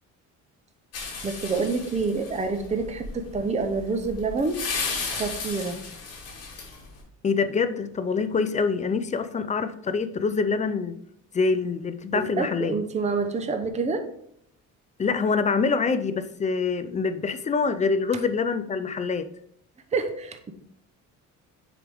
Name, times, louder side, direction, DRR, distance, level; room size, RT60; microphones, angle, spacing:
sound 1, 0.9-7.0, left 4 dB, 50° left, 2.1 m, -35 dB
voice 1, 1.2-4.6 5.1-5.8 12.1-14.1 19.9-20.5, right 4 dB, 20° right, 0.6 m, -27 dB
voice 2, 7.2-11.0 11.3-12.8 15.0-19.3, left 4 dB, 25° left, 0.4 m, -25 dB
7.0 x 4.8 x 3.4 m
cardioid pair, 155°, 31 cm